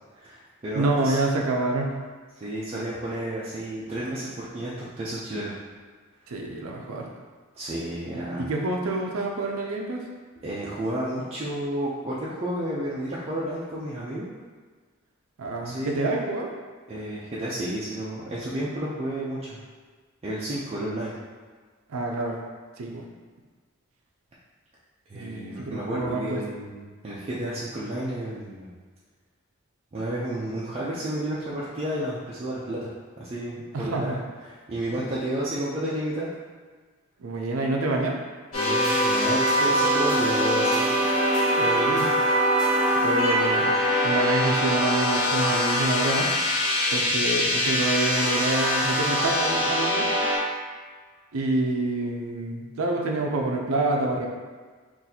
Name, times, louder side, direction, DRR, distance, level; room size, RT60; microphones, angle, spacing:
voice 1, 0.2-1.2 2.4-5.6 7.5-8.4 10.4-14.3 15.6-16.2 16.9-19.6 20.2-21.2 25.1-28.7 29.9-32.9 33.2-34.1 34.4-36.3 38.5-40.9, right 1 dB, 30° right, -8 dB, 0.4 m, -31 dB
voice 2, 0.7-1.9 6.3-7.1 8.4-10.0 15.4-16.5 21.9-22.4 22.8-23.0 25.1-26.4 33.7-34.2 34.9-35.0 37.2-38.2 41.6-42.1 43.0-43.8 44.0-46.3 46.9-50.1 51.3-54.3, right 2 dB, 85° right, 0 dB, 0.5 m, -27 dB
sound 1, 38.5-50.4, equal, 75° left, 1.3 m, -23 dB
3.9 x 2.5 x 2.8 m, 1.5 s
head